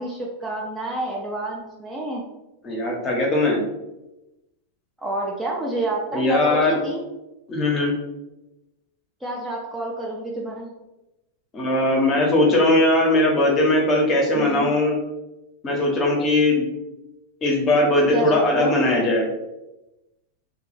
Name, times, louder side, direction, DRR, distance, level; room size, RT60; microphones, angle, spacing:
voice 1, 0.0-2.2 5.0-7.0 9.2-10.7 14.3-14.7 18.1-18.7, right 2 dB, 10° right, -3 dB, 0.5 m, -29 dB
voice 2, 2.6-3.6 6.1-6.8 7.5-7.9 11.5-15.0 15.6-16.7 17.4-19.3, left 1 dB, 30° left, -1 dB, 0.8 m, -19 dB
2.3 x 2.2 x 3.1 m, 0.98 s
hypercardioid pair, 120°, 0 cm